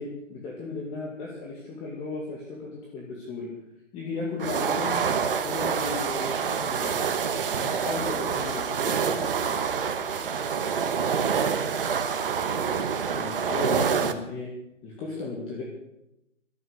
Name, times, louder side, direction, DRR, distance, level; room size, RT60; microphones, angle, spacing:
voice 1, 0.0-3.5 3.9-5.1 5.4-7.0 7.6-9.2 12.6-14.5 14.8-15.6, left 3 dB, 15° left, -3 dB, 2.3 m, -35 dB
sound 1, 4.4-14.1, right 6 dB, 45° right, 1.4 m, -27 dB
voice 2, 7.5-7.6, right 1 dB, 10° right, -7 dB, 3.6 m, -48 dB
16.5 x 13.0 x 6.6 m, 0.88 s
figure-of-eight pair, 145°, 38 cm